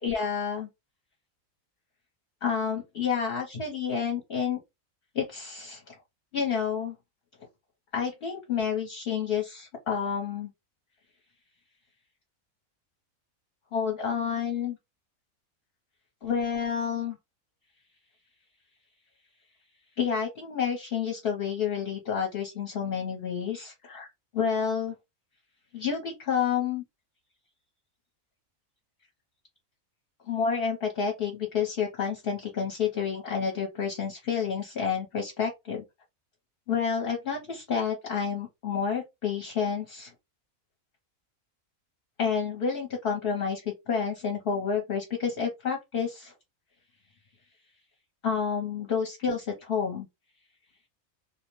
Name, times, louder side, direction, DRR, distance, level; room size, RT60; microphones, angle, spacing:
voice 1, 0.0-0.7 2.4-4.6 5.1-5.9 6.3-7.0 7.9-10.5 13.7-14.8 16.2-17.2 20.0-24.1 24.3-24.9 25.7-26.8 30.3-35.8 36.7-40.1 42.2-46.3 48.2-50.1, left 6 dB, 50° left, 0.8 m, -29 dB
2.4 x 2.1 x 3.0 m
omnidirectional pair, 1.5 m